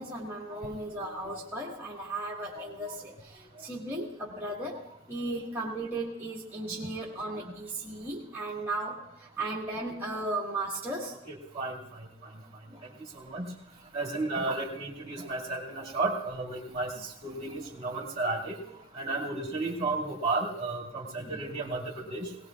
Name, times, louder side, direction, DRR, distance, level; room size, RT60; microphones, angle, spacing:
voice 1, 0.0-4.8 5.1-11.1 12.7-12.9 21.2-21.4, right 2 dB, 10° right, -7 dB, 1.7 m, -36 dB
voice 2, 2.5-3.0 3.5-3.7 6.8-6.9 7.4-7.5 11.3-12.3 12.8-13.5 13.9-18.6 18.9-22.4, right 3 dB, 30° right, -3 dB, 2.3 m, -34 dB
21.0 x 18.0 x 2.4 m, 0.82 s
head